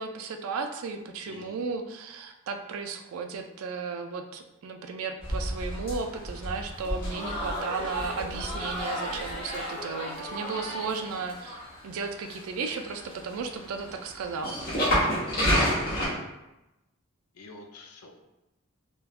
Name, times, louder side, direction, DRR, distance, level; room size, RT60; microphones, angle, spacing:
voice 1, 0.0-11.6 11.8-14.6, right 4 dB, 80° right, 5 dB, 0.3 m, -35 dB
sound 1, 5.2-16.1, equal, 45° left, 1.0 m, -32 dB
Crowd, 6.8-11.6, equal, 25° left, 0.8 m, -35 dB
voice 2, 17.3-18.2, left 3 dB, 85° left, 3 dB, 0.4 m, -49 dB
3.3 x 2.2 x 2.4 m, 0.97 s
head